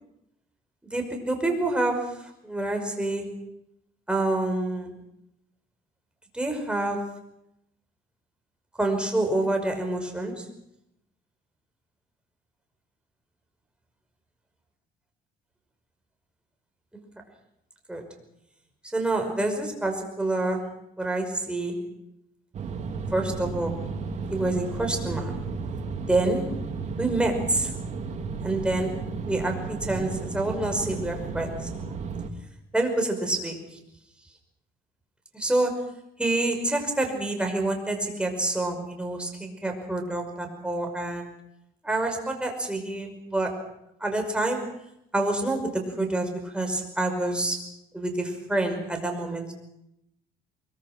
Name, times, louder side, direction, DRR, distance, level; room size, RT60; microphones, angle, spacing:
voice 1, 0.8-3.3 4.1-5.0 6.3-7.1 8.8-10.5 16.9-17.0 17.9-18.1 18.9-20.7 21.0-21.9 23.1-23.8 24.3-25.4 26.1-26.6 27.0-27.7 28.4-31.9 32.7-33.8 35.3-35.9 36.2-41.3 41.8-43.6 44.0-44.7 45.1-47.7 47.9-49.5, right 2 dB, 5° right, 3 dB, 5.5 m, -27 dB
sound 1, 22.5-32.3, right 4 dB, 45° right, 2.8 m, -33 dB
24.0 x 23.0 x 6.1 m, 0.79 s
cardioid pair, 110°, 17 cm